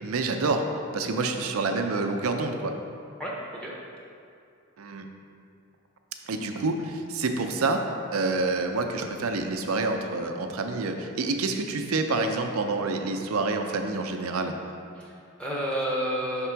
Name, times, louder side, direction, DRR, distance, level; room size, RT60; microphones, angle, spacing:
voice 1, 0.0-0.6 0.9-2.7 4.8-5.1 6.3-7.8 8.1-14.5, right 3 dB, 85° right, 5 dB, 0.5 m, -27 dB
voice 2, 3.2-3.7 15.0-16.5, equal, 5° left, -5 dB, 0.7 m, -30 dB
5.9 x 3.6 x 4.5 m, 2.5 s
head